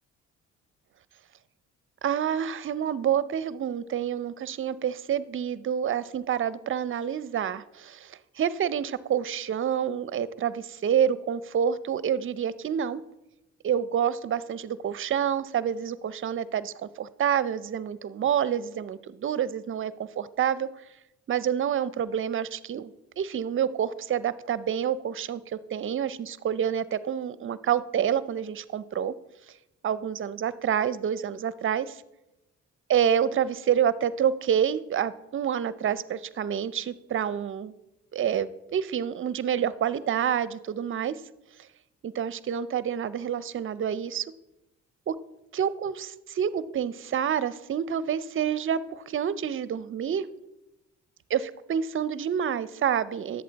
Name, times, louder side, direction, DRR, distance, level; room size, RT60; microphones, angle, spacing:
voice 1, 2.0-13.0 13.6-20.7 21.3-29.1 29.8-32.0 32.9-37.7 38.1-41.2 42.0-44.3 45.1-45.2 45.5-50.3 51.3-53.4, right 8 dB, 45° right, 17 dB, 0.6 m, -28 dB
11.0 x 8.0 x 4.0 m, 0.93 s
cardioid pair, 90°, 30 cm